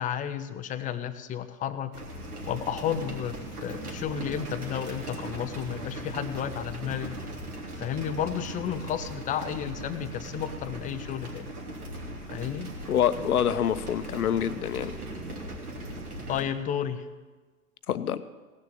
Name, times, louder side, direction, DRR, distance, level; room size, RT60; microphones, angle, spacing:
voice 1, 0.0-1.9 2.5-3.4 3.6-7.2 7.8-11.5 12.3-12.7 16.3-17.0, left 9 dB, 20° left, 10 dB, 0.7 m, -32 dB
sound 1, 1.9-16.4, right 1 dB, 85° right, 3.5 m, -39 dB
voice 2, 12.9-14.9 17.9-18.2, left 9 dB, 80° left, 13 dB, 0.9 m, -26 dB
18.0 x 6.9 x 9.2 m, 1.3 s
hypercardioid pair, 120°, 44 cm